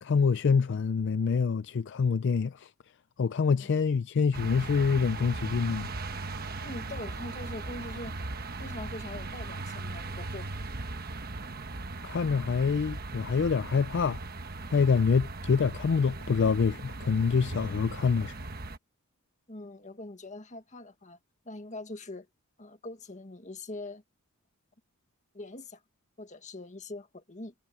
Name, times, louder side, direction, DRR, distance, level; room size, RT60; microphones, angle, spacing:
voice 1, 0.0-2.7 3.2-5.9 12.0-14.2 14.7-18.3, left 5 dB, 55° left, 0.4 m, -26 dB
sound 1, 4.3-18.8, right 3 dB, 45° right, 1.2 m, -38 dB
voice 2, 6.6-8.1 8.6-10.6 19.5-21.2 21.5-22.3 22.6-24.0 25.3-25.8 26.2-27.5, left 2 dB, 35° left, 1.7 m, -42 dB
head